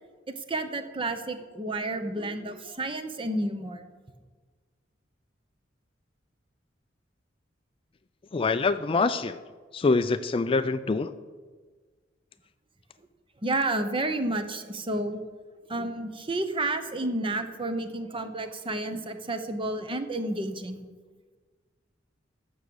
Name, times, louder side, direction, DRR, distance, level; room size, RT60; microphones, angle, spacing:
voice 1, 0.3-3.8 13.4-15.2 15.7-20.8, right 2 dB, 30° right, 8 dB, 0.9 m, -31 dB
voice 2, 8.3-9.4 9.7-11.1, left 3 dB, 30° left, 12 dB, 0.4 m, -25 dB
14.5 x 6.2 x 7.0 m, 1.4 s
head